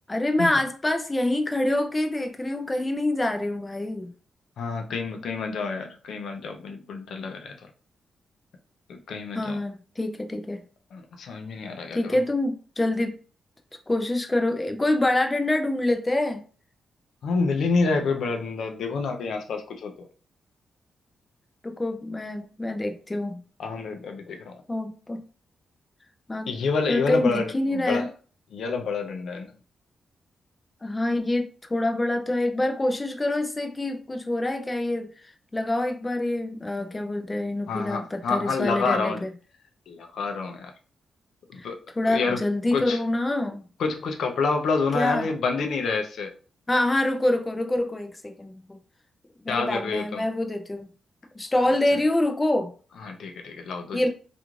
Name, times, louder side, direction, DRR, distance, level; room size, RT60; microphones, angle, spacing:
voice 1, 0.1-4.1 9.3-10.6 11.9-13.2 13.9-16.5 21.6-23.4 24.7-25.2 26.3-26.5 26.9-28.1 30.8-39.3 41.6-41.7 42.0-43.6 44.9-45.3 46.7-48.8 49.4-50.9 51.4-52.7 53.9-54.1, left 1 dB, 20° left, 5 dB, 0.3 m, -26 dB
voice 2, 4.6-7.5 8.9-9.6 10.9-12.2 17.2-20.1 23.6-24.6 26.5-28.1 28.5-29.5 37.7-39.2 39.9-40.7 41.5-41.8 42.1-42.4 42.7-43.0 43.8-46.3 49.5-50.3 53.0-54.0, left 4 dB, 80° left, 4 dB, 0.4 m, -28 dB
2.4 x 2.3 x 3.0 m, 0.39 s
cardioid pair, 115°, 0 cm